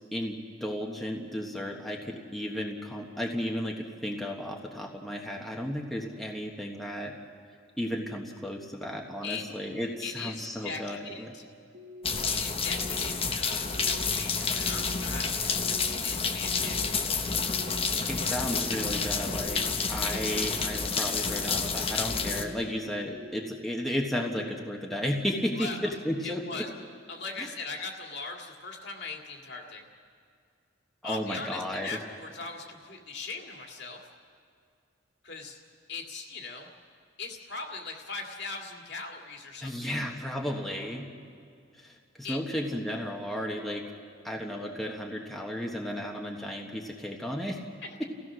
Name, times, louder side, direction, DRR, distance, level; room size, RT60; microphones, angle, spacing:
voice 1, 0.1-7.1 7.8-11.3 18.1-19.6 19.9-26.6 27.4-27.5 31.0-32.0 39.6-41.1 41.8-43.8 44.2-47.6, equal, ahead, -1 dB, 1.4 m, -34 dB
voice 2, 10.0-11.4 12.3-16.8 25.5-25.8 26.2-26.7 27.1-29.8 31.0-34.0 35.2-35.6 35.9-36.7 37.2-40.0 42.2-42.4 47.8-48.0, left 4 dB, 60° left, 1 dB, 2.3 m, -40 dB
sound 1, 11.7-12.2 12.7-13.2 13.6-14.1 14.6-15.0 15.5-16.0 16.4-16.9 17.4-17.9 18.3-18.8 19.3-19.7 20.2-20.7 21.1-21.6 22.1-22.6 23.0-23.5 23.9-24.4, left 2 dB, 55° right, 1.6 m, -46 dB
sound 2, 12.0-22.4, left 5 dB, 30° left, 1.1 m, -29 dB
29.0 x 16.0 x 6.3 m, 2.3 s
head